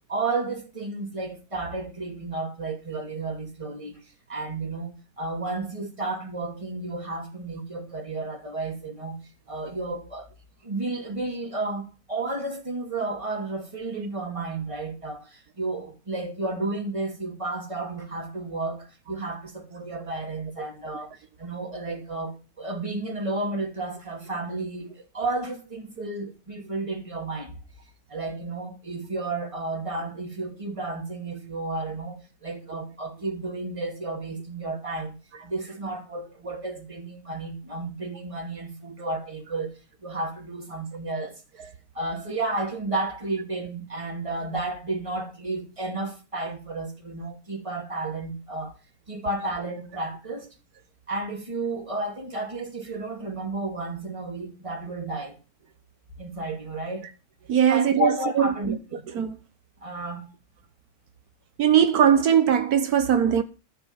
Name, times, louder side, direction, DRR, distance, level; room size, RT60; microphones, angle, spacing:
voice 1, 0.1-4.0 4.3-9.2 9.5-10.3 10.6-21.1 21.4-27.5 28.1-35.2 35.4-39.7 40.0-41.4 41.9-48.8 49.1-50.5 51.1-55.4 56.2-57.1 57.7-58.8 59.8-60.3, right 2 dB, 20° right, 2.5 m, -32 dB
voice 2, 57.5-58.8 59.1-59.3 61.6-63.4, right 8 dB, 80° right, 1.5 m, -20 dB
13.0 x 7.9 x 5.7 m
omnidirectional pair, 1.6 m